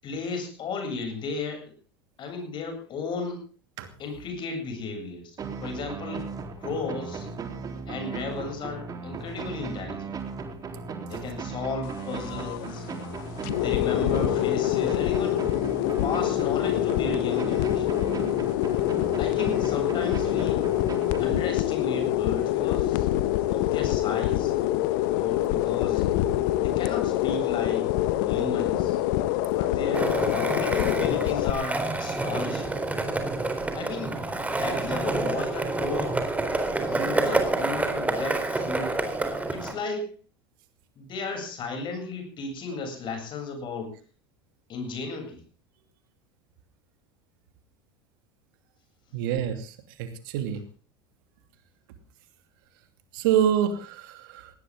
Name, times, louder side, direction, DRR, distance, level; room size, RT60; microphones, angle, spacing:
voice 1, 0.0-1.7 2.2-3.5 4.0-6.3 6.6-7.3 7.9-10.1 11.0-12.9 13.6-15.5 16.0-18.4 19.2-20.7 21.2-23.1 23.5-24.5 25.1-26.1 26.6-27.9 28.2-29.0 29.6-32.8 33.7-34.2 34.5-36.2 36.8-39.0 39.5-40.2 41.0-44.0 44.7-45.4, left 3 dB, 40° left, 5 dB, 7.9 m, -34 dB
sound 1, 5.4-21.9, right 4 dB, 30° right, 3.9 m, -37 dB
sound 2, 11.8-31.5, left 14 dB, 60° left, 1.4 m, -26 dB
Skateboard, 29.9-39.7, right 2 dB, 10° right, 4.0 m, -28 dB
voice 2, 49.1-50.6 53.1-54.5, right 9 dB, 65° right, 8 dB, 2.8 m, -26 dB
19.5 x 18.5 x 3.8 m, 0.36 s
figure-of-eight pair, 80°, 12 cm